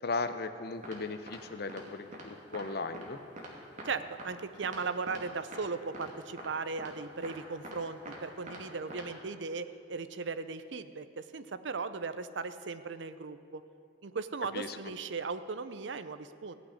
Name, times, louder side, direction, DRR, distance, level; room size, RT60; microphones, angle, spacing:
voice 1, 0.0-3.2 14.5-14.8, left 3 dB, 60° left, 10 dB, 0.8 m, -37 dB
sound 1, 0.8-1.0 1.3-1.4 1.7-1.8 2.1-2.2 2.5-2.6 2.9-3.1 3.4-3.5 3.8-3.9 4.2-4.3 4.6-4.8 5.1-5.2 5.5-5.6 5.9-6.1 6.4-6.5 6.8-6.9 7.2-7.3 7.6-8.2 8.5-8.6 8.9-9.0, right 1 dB, 40° right, 2.5 m, -44 dB
voice 2, 3.8-13.6 14.0-16.5, right 4 dB, 75° right, 12 dB, 0.6 m, -37 dB
16.5 x 6.3 x 9.9 m, 2.5 s
head